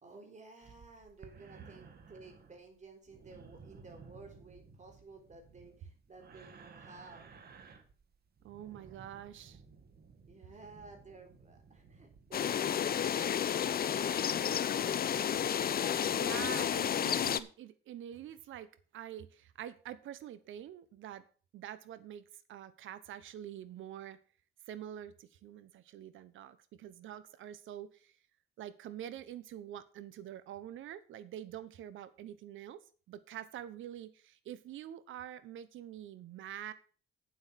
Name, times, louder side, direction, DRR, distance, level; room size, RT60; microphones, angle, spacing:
voice 1, 0.0-7.3 10.3-14.2, right 3 dB, 35° right, 4 dB, 4.1 m, -54 dB
sound 1, 0.6-12.4, right 5 dB, 50° right, 2.0 m, -56 dB
voice 2, 8.4-9.6 16.0-21.3 21.5-24.2 24.7-28.1 28.6-36.7, right 11 dB, 80° right, 15 dB, 1.1 m, -46 dB
sound 2, 12.3-17.4, left 9 dB, 50° left, 0.8 m, -31 dB
8.9 x 7.9 x 5.9 m, 0.40 s
cardioid pair, 90°, 20 cm